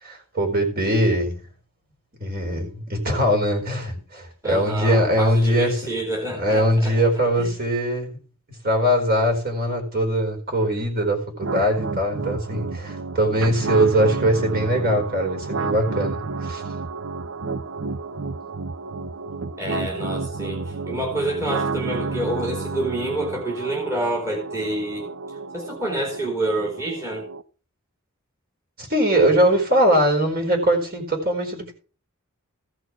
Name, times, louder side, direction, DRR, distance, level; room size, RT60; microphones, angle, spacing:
voice 1, 0.0-1.4 2.2-5.8 6.4-8.2 8.6-16.6 28.8-31.7, equal, 45° right, 4.4 m, -21 dB
voice 2, 4.4-6.9 7.4-7.5 19.6-25.1 25.5-27.2, right 1 dB, 15° right, 2.5 m, -28 dB
sound 1, 11.4-27.4, right 3 dB, 65° right, 0.7 m, -31 dB
15.0 x 6.2 x 6.1 m
head